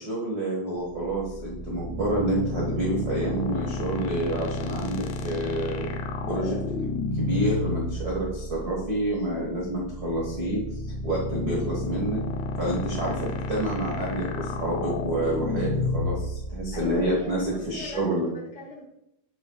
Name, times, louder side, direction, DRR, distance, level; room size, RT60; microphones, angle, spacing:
voice 1, 0.0-5.9 6.2-6.6 7.1-10.6 11.0-12.2 12.6-13.1 13.5-18.3, right 1 dB, 60° right, -3 dB, 0.9 m, -28 dB
sound 1, 0.8-18.0, left 2 dB, 85° left, 1.6 m, -32 dB
voice 2, 16.7-18.8, left 1 dB, 30° left, -4 dB, 2.8 m, -40 dB
9.5 x 9.3 x 2.3 m, 0.83 s
omnidirectional pair, 4.1 m